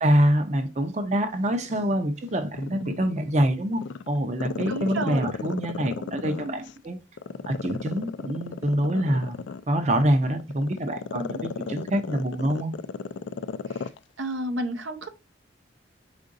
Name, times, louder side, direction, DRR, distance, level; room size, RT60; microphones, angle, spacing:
voice 1, 0.0-7.0 7.5-9.4 9.7-12.7, right 1 dB, 40° right, 0.6 m, -25 dB
Growling, 1.6-3.3 3.7-6.7 7.2-14.0 14.3-14.4, left 5 dB, 75° left, 0.3 m, -34 dB
voice 2, 4.7-5.3 13.7-13.9 14.2-15.1, right 1 dB, 85° right, 0.8 m, -31 dB
5.1 x 3.7 x 2.6 m
head